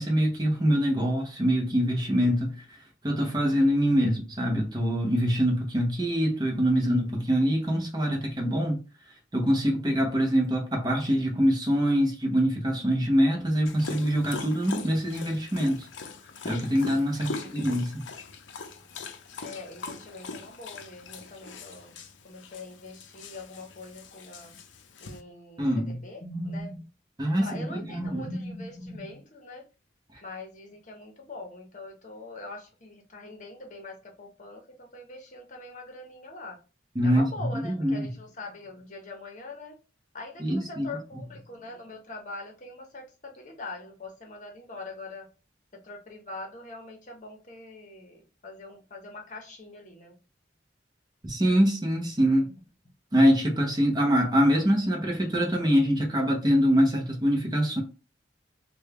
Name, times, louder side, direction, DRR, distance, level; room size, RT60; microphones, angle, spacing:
voice 1, 0.0-2.8 3.0-8.8 9.3-15.9 16.4-18.0 25.6-26.0 27.2-28.2 37.0-38.1 40.4-40.9 51.2-52.5 53.1-57.8, equal, 20° right, 0.7 m, -24 dB
Dog, 13.7-25.2, left 4 dB, 80° left, 0.5 m, -41 dB
voice 2, 17.3-17.6 19.4-22.0 22.2-24.5 25.0-26.9 27.4-29.6 30.2-36.6 37.0-39.8 40.1-45.3 45.7-50.2 52.3-52.5, left 2 dB, 40° left, 0.8 m, -42 dB
3.4 x 2.2 x 3.4 m
head